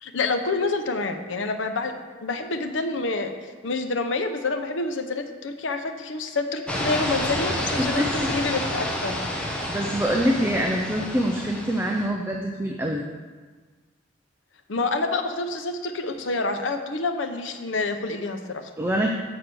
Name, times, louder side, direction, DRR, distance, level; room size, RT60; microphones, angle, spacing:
voice 1, 0.0-3.4 3.6-9.2 14.7-18.7, left 3 dB, 80° left, 7 dB, 0.8 m, -28 dB
sound 1, 6.7-12.1, equal, 5° left, 1.0 m, -29 dB
voice 2, 7.8-8.1 9.7-13.0 18.8-19.1, equal, 10° right, 1 dB, 0.5 m, -25 dB
8.0 x 4.9 x 6.1 m, 1.4 s
head